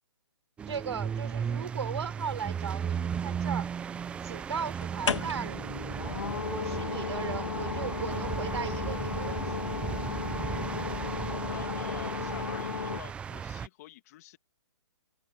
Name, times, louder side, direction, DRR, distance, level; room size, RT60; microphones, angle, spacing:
sound 1, 0.6-13.7, right 7 dB, 5° right, 0.6 m, -36 dB
voice 1, 0.7-3.7 4.2-5.7 6.5-9.6, right 7 dB, 65° right, 4.5 m, -37 dB
sound 2, 2.6-3.4 4.8-13.0, left 6 dB, 80° left, 2.3 m, -34 dB
voice 2, 11.5-14.4, left 17 dB, 35° left, 1.7 m, -47 dB
hypercardioid pair, 155°, 15 cm